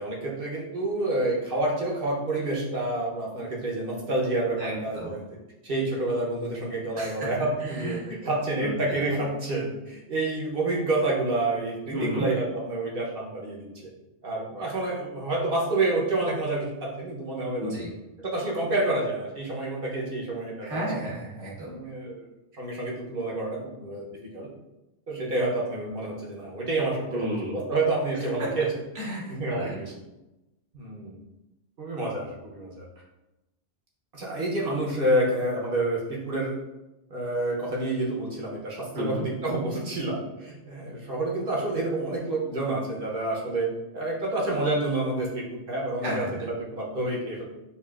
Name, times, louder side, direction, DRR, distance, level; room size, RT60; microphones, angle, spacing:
voice 1, 0.0-5.3 5.6-13.9 14.2-17.8 18.2-20.7 21.6-22.3 22.5-24.5 25.1-28.7 29.3-29.9 30.7-31.2 31.8-32.9 34.1-36.6 37.1-43.7 43.9-47.4, right 2 dB, 55° right, -3 dB, 1.0 m, -28 dB
voice 2, 4.6-5.1 6.9-7.2 7.8-8.0 8.6-8.7 11.9-12.3 17.6-17.9 20.6-21.7 27.1-27.5 28.4-28.5 28.9-29.8 38.9-39.2 46.0-46.3, equal, 90° right, -5 dB, 1.5 m, -32 dB
5.6 x 2.4 x 2.4 m, 0.97 s
omnidirectional pair, 1.2 m